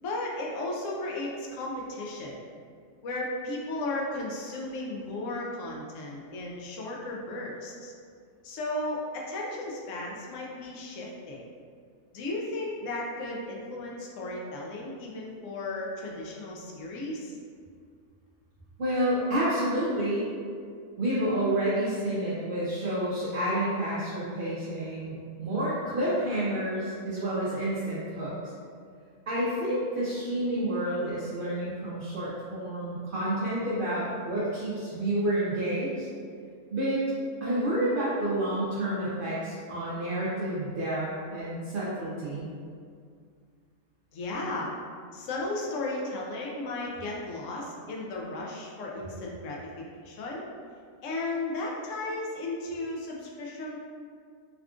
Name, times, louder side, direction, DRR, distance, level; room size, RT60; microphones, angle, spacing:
voice 1, 0.0-2.4 3.0-7.9 8.4-11.4 12.1-17.3 44.1-44.7 45.1-50.5 51.0-53.8, left 2 dB, 70° left, -2 dB, 0.9 m, -35 dB
voice 2, 18.8-20.2 21.0-28.3 29.3-36.1 36.7-37.0 37.4-42.5, right 1 dB, 70° right, -8 dB, 0.5 m, -29 dB
3.5 x 2.3 x 2.4 m, 2.2 s
omnidirectional pair, 1.5 m